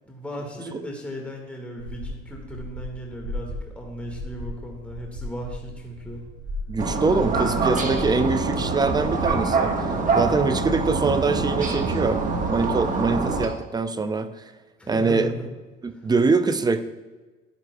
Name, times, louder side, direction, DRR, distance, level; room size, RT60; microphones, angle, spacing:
voice 1, 0.0-6.2 14.8-15.5 15.9-16.1, equal, 5° left, 0 dB, 1.6 m, -36 dB
sound 1, 1.8-9.3, left 1 dB, 90° right, 2.7 m, -36 dB
voice 2, 6.7-9.7 10.1-12.2 12.5-14.3 14.9-15.3 15.8-16.8, right 4 dB, 20° right, 11 dB, 0.5 m, -23 dB
sound 2, 6.8-13.5, right 3 dB, 40° right, 1.3 m, -25 dB
11.0 x 9.2 x 2.2 m, 1.2 s
cardioid pair, 95°, 21 cm